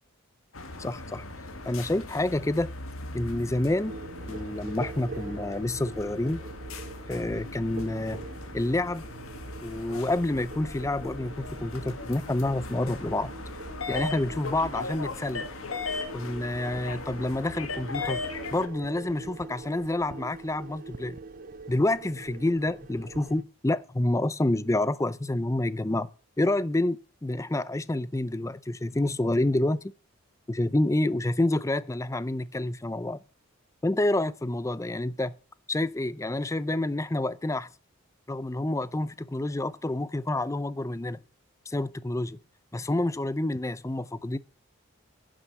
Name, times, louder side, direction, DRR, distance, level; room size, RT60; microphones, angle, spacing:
sound 1, 0.5-18.7, left 3 dB, 85° left, 1.8 m, -38 dB
voice 1, 0.8-1.3 1.7-2.7 3.1-4.0 4.3-6.4 7.1-8.2 8.5-9.0 9.6-13.3 13.9-15.5 16.1-21.2 21.7-26.1 26.4-29.8 30.5-33.2 33.8-35.4 35.7-37.7 38.3-41.2 41.7-42.4 42.7-44.4, left 1 dB, 15° left, 0.5 m, -28 dB
sound 2, 3.8-23.4, right 3 dB, 40° right, 0.6 m, -44 dB
10.0 x 7.5 x 7.3 m
head